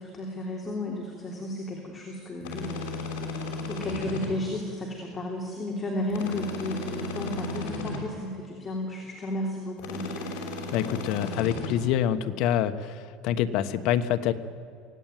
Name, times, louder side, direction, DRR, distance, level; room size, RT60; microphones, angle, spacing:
voice 1, 0.0-2.9 3.7-10.3, left 1 dB, 15° left, 0 dB, 3.2 m, -33 dB
sound 1, 2.4-4.3 6.1-8.0 9.8-11.7, left 2 dB, 75° left, 5.8 m, -35 dB
voice 2, 10.7-14.3, left 10 dB, 55° left, 9 dB, 1.3 m, -26 dB
24.5 x 17.5 x 9.2 m, 2.3 s
cardioid pair, 150°, 0 cm